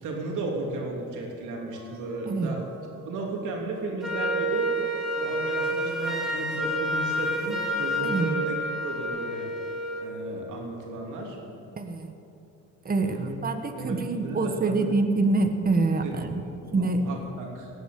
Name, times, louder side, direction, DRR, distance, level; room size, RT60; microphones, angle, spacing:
voice 1, 0.0-2.7 3.0-4.7 5.2-9.5 10.0-11.4 13.1-13.4 13.7-14.9 16.0-16.2 16.6-17.7, right 2 dB, 85° right, 0 dB, 3.3 m, -34 dB
sound 1, 1.7-9.0, right 4 dB, 65° right, 3.8 m, -47 dB
Wind instrument woodwind instrument, 4.0-10.1, right 1 dB, ahead, 2.2 m, -29 dB
voice 2, 8.0-8.3 11.8-12.1 12.8-16.4 16.7-17.0, right 3 dB, 30° right, 6 dB, 1.4 m, -26 dB
18.5 x 8.2 x 9.4 m, 2.8 s
cardioid pair, 90°, 30 cm